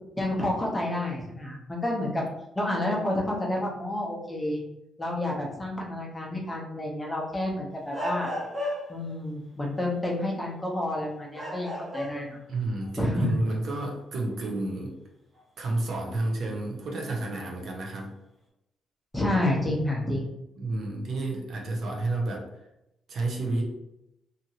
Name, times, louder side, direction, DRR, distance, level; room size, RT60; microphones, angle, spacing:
voice 1, 0.1-2.2 2.5-4.6 5.0-8.3 8.9-12.4 13.0-13.3 19.1-20.3, left 1 dB, 10° left, -3 dB, 0.7 m, -29 dB
sound 1, 7.9-9.1 10.6-10.8 11.3-12.4 12.8-12.9 15.4-15.5 17.0-17.3, left 1 dB, 25° right, 1.1 m, -34 dB
voice 2, 12.5-15.0 15.6-18.1 20.6-22.5 23.1-23.6, right 2 dB, 55° right, 0 dB, 0.6 m, -30 dB
2.8 x 2.5 x 2.8 m, 0.86 s
cardioid pair, 145°, 0 cm